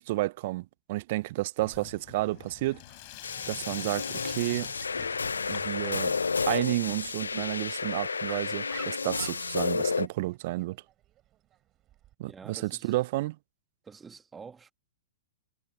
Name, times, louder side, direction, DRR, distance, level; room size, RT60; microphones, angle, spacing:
voice 1, 0.0-2.8 3.5-4.7 5.5-6.2 6.5-10.8 12.2-13.4, right 18 dB, 50° right, 0.5 m, -31 dB
Sink (filling or washing), 1.6-8.4, left 23 dB, 50° left, 3.9 m, -46 dB
Dog, 1.6-12.1, right 13 dB, 30° right, 6.8 m, -56 dB
sound 1, 3.2-10.1, left 4 dB, 80° left, 0.5 m, -31 dB
voice 2, 12.3-12.9 13.8-14.7, right 5 dB, 15° right, 1.4 m, -47 dB
figure-of-eight pair, 105°, 0 cm